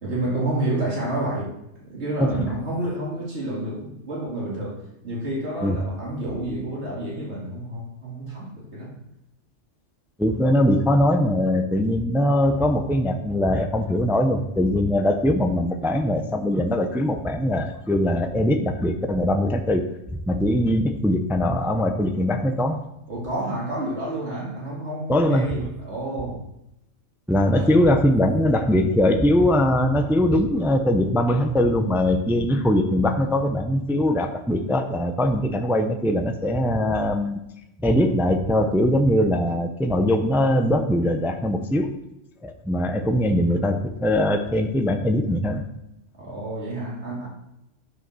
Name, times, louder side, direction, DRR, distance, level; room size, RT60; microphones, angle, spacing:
voice 1, 0.0-1.5 1.9-4.8 5.0-9.0 23.1-26.4 27.5-27.8 46.2-47.3, right 1 dB, 65° right, -4 dB, 2.8 m, -29 dB
voice 2, 10.2-19.8 20.3-22.8 25.1-25.7 27.3-37.4 37.8-41.9 42.4-45.6, left 1 dB, 5° right, 6 dB, 0.4 m, -21 dB
9.8 x 5.1 x 6.1 m, 0.85 s
omnidirectional pair, 1.3 m